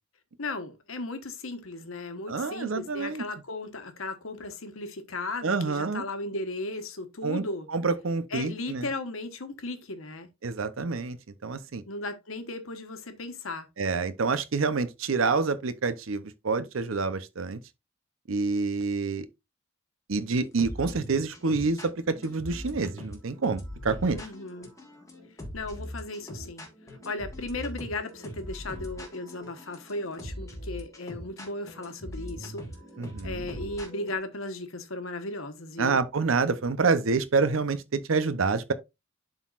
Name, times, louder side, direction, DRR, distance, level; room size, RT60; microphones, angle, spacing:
voice 1, 0.4-7.7 8.3-10.3 11.9-13.7 24.1-24.7 25.5-26.7 27.0-32.7 33.2-36.0, left 2 dB, 90° left, 1.2 m, -36 dB
voice 2, 2.3-3.2 5.4-6.0 7.2-7.4 7.7-8.9 10.4-11.2 11.4-11.8 13.8-17.6 18.3-19.3 20.1-24.2 33.0-33.5 35.8-38.7, right 4 dB, 75° right, 0.7 m, -27 dB
sound 1, 20.4-34.2, equal, 15° left, 1.5 m, -41 dB
11.0 x 4.0 x 2.4 m
head